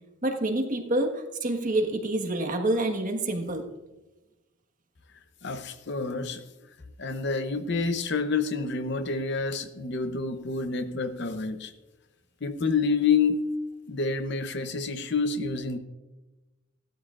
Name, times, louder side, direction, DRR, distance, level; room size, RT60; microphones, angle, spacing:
voice 1, 0.2-3.6, right 1 dB, 40° right, 3 dB, 1.4 m, -27 dB
voice 2, 5.4-6.4 7.0-11.7 12.4-13.4 13.9-15.8, left 4 dB, 55° left, 9 dB, 0.8 m, -28 dB
17.0 x 13.0 x 2.5 m, 1.1 s
head